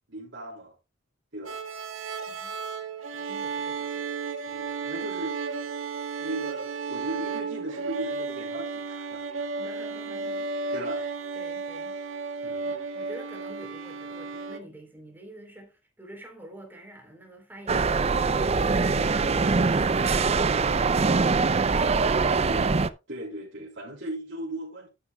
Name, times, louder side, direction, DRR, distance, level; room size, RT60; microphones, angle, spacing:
voice 1, 0.1-0.7 1.3-1.6 4.5-5.4 6.2-9.8 10.7-11.1 12.4-12.8 22.5-22.8 23.1-24.9, right 1 dB, 60° right, 3.6 m, -37 dB
sound 1, 1.5-14.6, right 4 dB, 80° right, 1.6 m, -33 dB
voice 2, 2.3-2.6 3.1-4.0 9.6-11.1 11.4-12.0 12.9-22.5, right 1 dB, 10° right, 3.6 m, -47 dB
sound 2, 17.7-22.9, right 4 dB, 30° right, 0.5 m, -23 dB
12.0 x 10.0 x 2.3 m
head